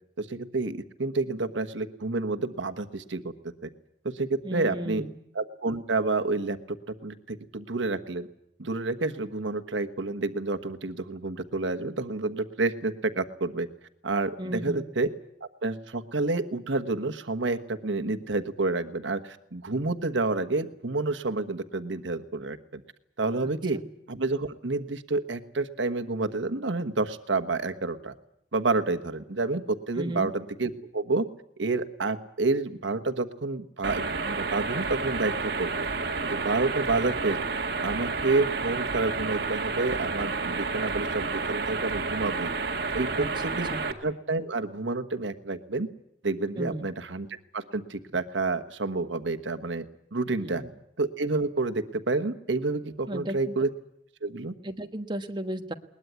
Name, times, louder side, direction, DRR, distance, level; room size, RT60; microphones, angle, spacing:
voice 1, 0.2-3.3 3.6-3.7 4.0-5.0 5.3-6.6 6.9-8.3 8.6-13.7 14.0-15.1 15.6-22.8 23.2-23.8 24.1-28.1 28.5-31.3 31.6-35.9 36.2-37.4 37.8-42.5 42.9-43.7 44.0-45.9 46.2-47.3 47.5-49.8 50.1-50.6 51.0-53.7 54.2-54.5, right 3 dB, 90° right, 8 dB, 1.3 m, -29 dB
voice 2, 4.4-5.2 14.4-14.9 23.4-23.9 29.9-30.3 43.2-43.3 43.7-43.8 46.6-46.9 50.4-50.7 53.1-53.5 54.6-55.7, right 1 dB, 25° right, 7 dB, 1.3 m, -35 dB
sound 1, 33.8-43.9, right 4 dB, 60° right, 2.0 m, -30 dB
21.0 x 20.0 x 9.4 m, 0.72 s
head